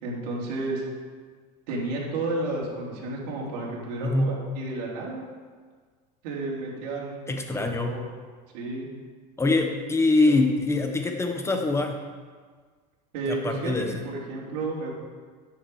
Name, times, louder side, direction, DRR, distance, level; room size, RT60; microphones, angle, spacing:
voice 1, 0.0-0.8 1.7-5.2 6.2-7.2 7.5-8.1 8.5-8.9 10.3-10.4 13.1-13.7 14.0-14.9, right 2 dB, 75° right, -4 dB, 3.3 m, -32 dB
voice 2, 4.0-4.4 7.3-8.0 9.4-12.0 13.3-13.9, left 2 dB, 15° left, 4 dB, 1.2 m, -24 dB
10.0 x 7.3 x 4.8 m, 1.5 s
supercardioid pair, 120°, 21 cm